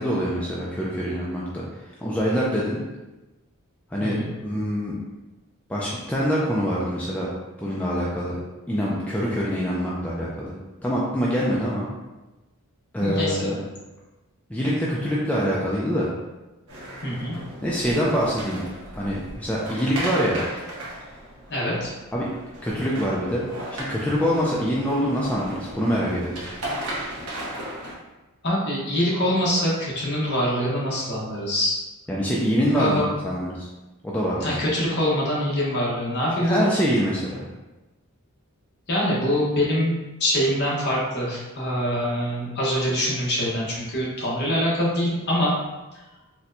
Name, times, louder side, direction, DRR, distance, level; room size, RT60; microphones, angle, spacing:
voice 1, 0.0-1.6 2.0-2.8 3.9-5.0 5.7-7.3 7.6-8.4 8.7-10.5 10.8-11.9 12.9-13.6 14.5-16.1 17.6-18.6 19.0-20.4 22.1-22.3 22.6-23.5 23.9-26.4 32.1-33.7 34.0-34.5 36.4-37.5, equal, 5° left, -6 dB, 0.3 m, -25 dB
voice 2, 13.0-13.6 17.0-17.3 21.5-21.9 28.4-31.7 32.7-33.1 34.4-36.6 38.9-45.5, equal, 50° left, -6 dB, 1.0 m, -24 dB
sound 1, 16.7-28.0, right 1 dB, 80° right, 0.9 m, -36 dB
4.2 x 2.1 x 2.6 m, 1.1 s
head